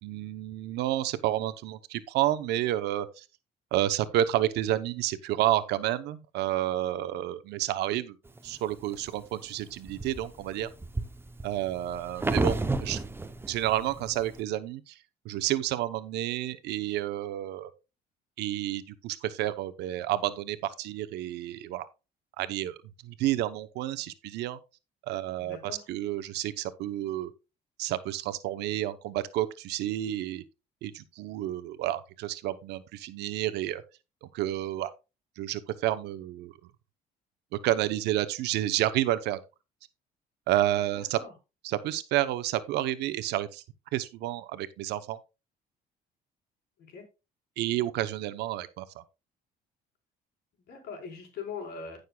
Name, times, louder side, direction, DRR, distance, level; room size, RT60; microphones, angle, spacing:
voice 1, 0.0-3.2 3.7-8.2 8.4-10.7 11.4-13.0 13.5-14.9 15.2-17.7 18.4-21.9 22.4-22.8 23.0-24.6 25.0-25.6 25.9-27.3 27.8-30.4 30.8-33.8 34.2-34.9 35.4-36.5 37.6-39.4 40.5-41.2 41.6-43.6 43.9-45.2 47.6-48.8, right 13 dB, 80° right, 0.9 m, -30 dB
untitled sitting on bed, 8.4-9.1 9.6-14.4, right 3 dB, 15° right, 0.8 m, -32 dB
voice 2, 25.4-25.8 40.9-41.3 46.8-47.0 50.6-52.0, left 5 dB, 70° left, 4.5 m, -41 dB
15.5 x 6.6 x 2.3 m
cardioid pair, 110°, 17 cm